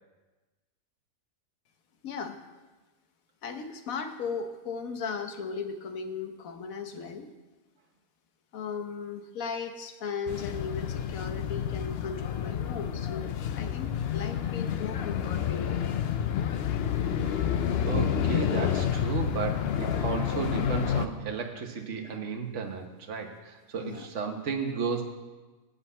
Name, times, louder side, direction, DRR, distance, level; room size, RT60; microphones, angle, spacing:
voice 1, 2.0-2.4 3.4-7.3 8.5-15.8 23.8-24.1, left 5 dB, 75° left, 7 dB, 1.4 m, -37 dB
sound 1, 10.3-21.1, left 9 dB, 60° left, 0.7 m, -29 dB
voice 2, 17.8-25.0, right 5 dB, 60° right, 2 dB, 1.4 m, -33 dB
10.5 x 5.6 x 8.2 m, 1.2 s
omnidirectional pair, 1.5 m